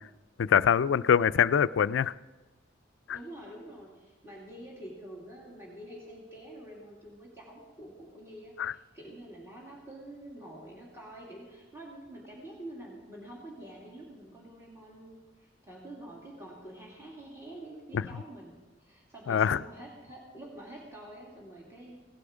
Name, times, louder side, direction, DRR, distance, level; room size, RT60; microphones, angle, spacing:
voice 1, 0.4-2.1 3.1-3.2 8.6-8.7 17.9-18.0 19.3-19.6, left 8 dB, 80° left, 16 dB, 0.4 m, -24 dB
voice 2, 3.1-22.0, right 1 dB, 15° right, -4 dB, 2.5 m, -47 dB
17.0 x 12.0 x 5.0 m, 1.2 s
head